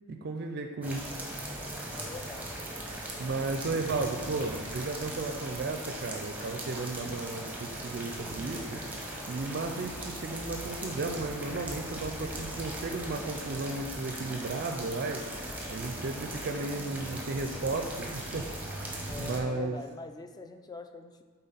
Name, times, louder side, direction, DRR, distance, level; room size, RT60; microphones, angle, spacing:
voice 1, 0.1-1.2 3.2-8.8 9.3-18.5 18.7-19.8, right 3 dB, 50° right, 5 dB, 0.4 m, -34 dB
sound 1, 0.8-19.4, right 1 dB, 5° right, 0.9 m, -39 dB
voice 2, 1.9-2.5 19.1-21.2, left 4 dB, 20° left, 7 dB, 0.4 m, -43 dB
8.2 x 3.9 x 4.0 m, 1.5 s
head